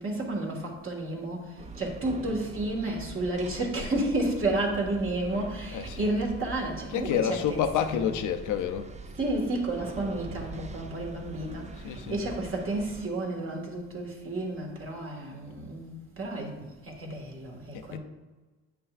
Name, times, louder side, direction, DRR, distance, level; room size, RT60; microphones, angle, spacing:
voice 1, 0.0-8.2 9.2-18.0, right 2 dB, 45° right, 1.7 m, -31 dB
sound 1, 1.6-13.1, right 3 dB, 25° right, 0.4 m, -43 dB
voice 2, 5.7-6.1 6.9-8.9 11.8-12.2 17.7-18.0, left 8 dB, 80° left, 0.6 m, -29 dB
9.0 x 5.8 x 2.5 m
cardioid pair, 90°, 30 cm